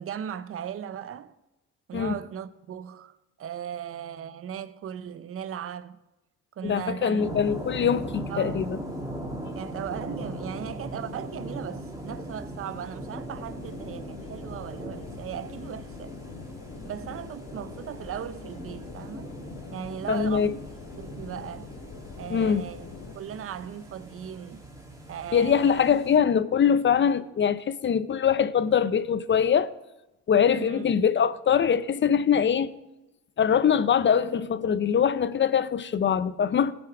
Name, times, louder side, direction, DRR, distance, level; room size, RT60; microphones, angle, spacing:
voice 1, 0.0-1.4 1.9-6.0 6.6-7.2 8.3-8.7 9.5-16.1 16.8-19.3 19.7-20.6 21.0-21.7 22.2-22.9 23.1-24.6 25.1-25.9 30.6-30.9, right 9 dB, 45° right, 0.7 m, -37 dB
voice 2, 6.6-8.8 20.1-20.5 22.3-22.7 25.3-29.7 30.3-32.7 33.4-36.7, left 7 dB, 40° left, 0.6 m, -23 dB
sound 1, 7.2-26.2, right 1 dB, 10° right, 2.5 m, -39 dB
sound 2, 13.3-23.2, left 5 dB, 70° left, 1.3 m, -44 dB
17.0 x 6.2 x 4.9 m
cardioid pair, 90°, 30 cm